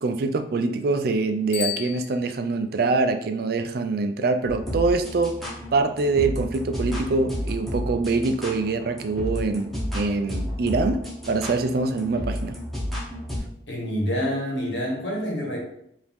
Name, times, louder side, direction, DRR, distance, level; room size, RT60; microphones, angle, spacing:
voice 1, 0.0-5.3 5.7-12.6, right 3 dB, 55° right, 8 dB, 0.4 m, -24 dB
Bicycle bell, 1.5-2.8, left 9 dB, 75° left, 0.8 m, -34 dB
sound 1, 4.5-13.4, equal, ahead, 1.0 m, -32 dB
voice 2, 13.7-15.6, equal, 90° left, -1 dB, 1.4 m, -27 dB
4.8 x 2.7 x 3.5 m, 0.73 s
head